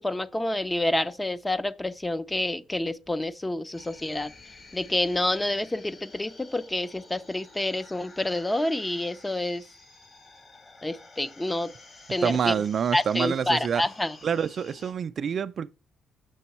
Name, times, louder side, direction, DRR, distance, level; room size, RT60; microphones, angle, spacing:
voice 1, 0.0-4.3 4.7-9.6 10.8-11.7 12.1-12.5 12.9-14.1, left 1 dB, 15° left, 0.6 m, -28 dB
sound 1, 3.7-14.9, left 3 dB, 40° left, 2.3 m, -51 dB
voice 2, 12.2-13.8 14.2-15.7, right 7 dB, 55° right, 0.4 m, -27 dB
6.8 x 6.2 x 4.2 m
cardioid pair, 90°, 0 cm